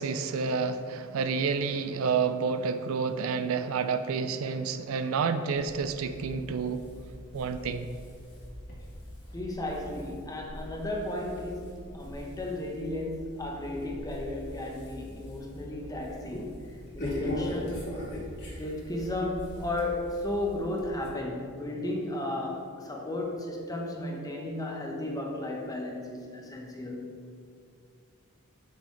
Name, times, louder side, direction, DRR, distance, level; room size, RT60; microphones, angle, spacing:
voice 1, 0.0-6.8 7.3-7.9, right 5 dB, 70° right, 10 dB, 0.4 m, -29 dB
sound 1, 5.6-21.1, left 1 dB, 50° left, 1.7 m, -42 dB
voice 2, 9.3-18.0 18.6-27.2, left 1 dB, 15° left, 0 dB, 0.9 m, -34 dB
8.2 x 6.1 x 3.2 m, 2.2 s
head